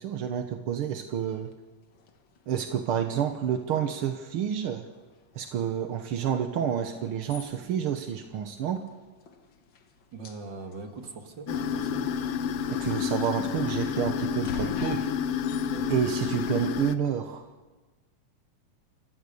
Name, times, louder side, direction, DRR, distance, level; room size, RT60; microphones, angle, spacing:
voice 1, 0.0-1.5 2.5-4.9 5.3-8.8 12.7-15.1 15.9-17.5, right 8 dB, 70° right, 6 dB, 1.3 m, -29 dB
sound 1, 1.3-17.5, left 5 dB, 50° left, 1.5 m, -49 dB
voice 2, 10.1-12.2 13.1-13.6 15.7-15.9, right 3 dB, 40° right, 4 dB, 2.2 m, -42 dB
sound 2, 11.5-16.9, left 7 dB, 80° left, 1.4 m, -29 dB
29.0 x 15.0 x 7.0 m, 1.3 s
omnidirectional pair, 3.8 m